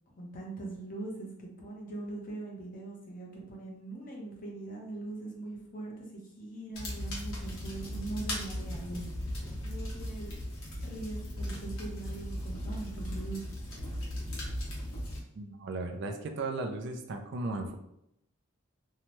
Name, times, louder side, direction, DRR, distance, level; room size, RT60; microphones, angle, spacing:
voice 1, 0.2-9.2 9.6-10.4 10.8-13.4, right 2 dB, 40° left, -2 dB, 0.7 m, -41 dB
sound 1, 6.7-15.2, equal, 75° left, 1.0 m, -37 dB
voice 2, 15.4-17.7, right 2 dB, 55° right, 5 dB, 0.3 m, -36 dB
2.7 x 2.2 x 3.0 m, 0.78 s
head